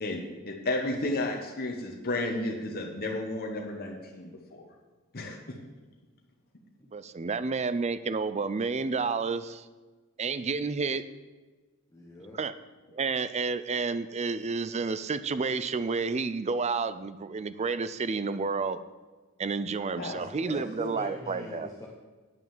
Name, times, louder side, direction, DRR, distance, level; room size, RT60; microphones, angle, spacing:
voice 1, 0.0-4.6 5.1-5.6 20.0-20.3, left 2 dB, 50° left, 1 dB, 1.1 m, -33 dB
voice 2, 6.9-9.6 10.2-11.1 12.4-12.5 12.9-18.8 19.4-21.7, right 4 dB, 30° right, 13 dB, 0.5 m, -30 dB
voice 3, 11.9-12.4 20.4-21.9, left 1 dB, 15° left, -2 dB, 1.1 m, -41 dB
9.3 x 6.0 x 7.3 m, 1.3 s
head